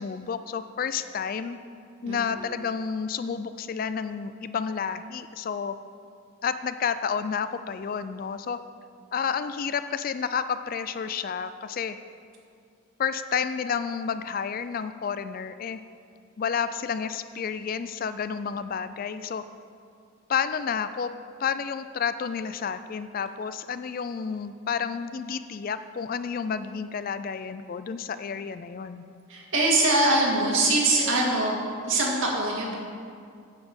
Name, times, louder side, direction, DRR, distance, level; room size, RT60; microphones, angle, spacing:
voice 1, 0.0-1.6 2.0-5.8 6.4-8.6 9.1-12.0 13.0-15.8 16.4-19.4 20.3-21.1 21.4-29.0, left 6 dB, 40° left, 12 dB, 0.3 m, -30 dB
voice 2, 2.0-2.4 29.3-31.6 31.8-32.8, right 2 dB, 65° right, -3 dB, 2.2 m, -23 dB
9.5 x 7.4 x 6.3 m, 2.3 s
head